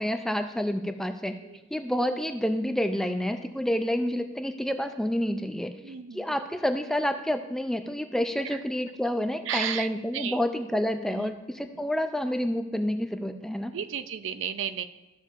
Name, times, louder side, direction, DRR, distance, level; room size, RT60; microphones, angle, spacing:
voice 1, 0.0-1.3 1.7-5.7 6.1-13.7, equal, ahead, 7 dB, 0.3 m, -28 dB
voice 2, 5.8-6.4 9.5-9.9 10.1-10.4 11.1-11.3 11.7-11.8 13.7-14.8, right 8 dB, 65° right, 11 dB, 0.4 m, -33 dB
13.0 x 6.9 x 2.4 m, 1.1 s
head